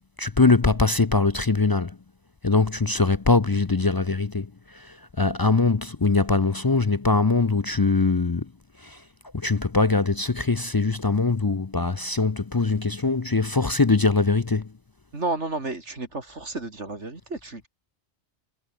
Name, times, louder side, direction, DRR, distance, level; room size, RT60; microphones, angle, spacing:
voice 1, 0.2-1.9 2.4-4.5 4.7-4.9 5.2-8.5 8.8-9.0 9.4-14.7, left 3 dB, 30° left, 0.4 m, -22 dB
voice 2, 15.1-17.7, right 2 dB, 75° right, 3.9 m, -31 dB
omnidirectional pair, 1.2 m